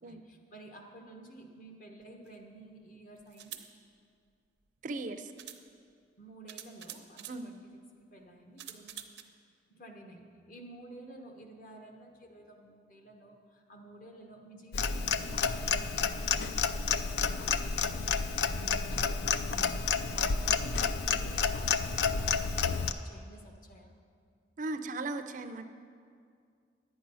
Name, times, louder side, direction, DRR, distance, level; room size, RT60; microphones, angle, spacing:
voice 1, 0.0-3.6 6.2-7.8 8.1-8.9 9.7-23.9, right 1 dB, 50° left, 2 dB, 1.2 m, -52 dB
sound 1, 2.3-2.4 3.3-3.7 4.8-4.9 5.4-5.6 6.5-7.4 8.6-9.2, right 11 dB, 85° right, 0.7 m, -46 dB
voice 2, 4.8-5.3 7.3-7.5 24.6-25.6, right 2 dB, 45° right, 9 dB, 0.5 m, -37 dB
Clock, 14.7-22.9, left 6 dB, 65° left, 0.4 m, -30 dB
11.0 x 8.6 x 5.5 m, 2.3 s
head